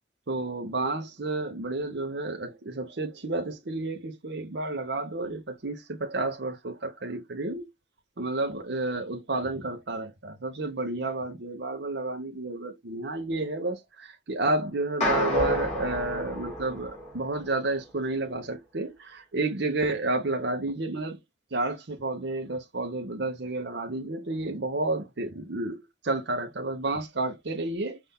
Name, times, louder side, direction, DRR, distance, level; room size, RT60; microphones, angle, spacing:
voice 1, 0.3-7.7 8.2-21.2 21.5-28.0, right 2 dB, 60° right, 0.8 m, -31 dB
sound 1, 15.0-17.5, left 1 dB, 35° left, 2.9 m, -30 dB
5.6 x 2.6 x 3.5 m
head